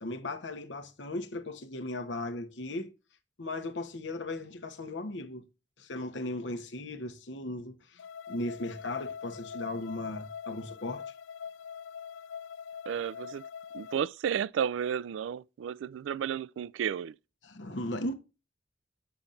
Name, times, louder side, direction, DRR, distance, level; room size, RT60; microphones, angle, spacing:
voice 1, 0.0-2.9 3.4-5.5 5.8-11.0 17.4-18.1, left 2 dB, 75° left, 1.0 m, -37 dB
sound 1, 8.0-14.0, left 7 dB, 90° left, 0.4 m, -43 dB
voice 2, 12.9-13.5 13.7-17.1, right 8 dB, 90° right, 0.3 m, -32 dB
6.9 x 6.9 x 2.5 m
head